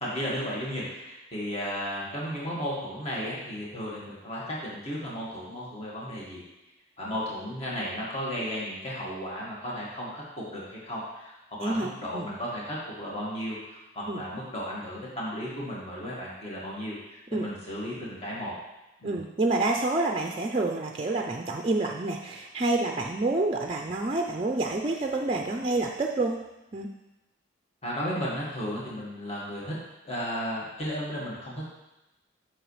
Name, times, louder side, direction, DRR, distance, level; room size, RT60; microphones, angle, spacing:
voice 1, 0.0-6.4 7.0-18.5 19.0-19.2 27.8-29.7 30.0-31.6, equal, 30° left, -6 dB, 1.7 m, -34 dB
voice 2, 11.6-12.3 14.1-14.2 17.3-17.5 19.0-26.4 26.7-26.9, right 2 dB, 30° right, 2 dB, 0.4 m, -28 dB
7.9 x 6.0 x 3.2 m, 1.0 s
head